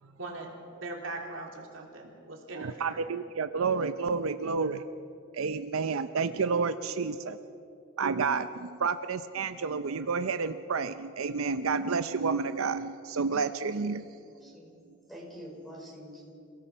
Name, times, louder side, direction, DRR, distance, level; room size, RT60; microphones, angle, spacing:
voice 1, 0.2-0.5 0.8-3.1, right 2 dB, 70° right, 0 dB, 3.4 m, -40 dB
voice 2, 2.6-4.8 5.3-7.4 8.0-14.0, right 5 dB, 85° right, 10 dB, 0.6 m, -30 dB
voice 3, 14.1-14.7 15.1-16.3, equal, ahead, -3 dB, 4.8 m, -46 dB
28.5 x 17.0 x 5.6 m, 2.6 s
head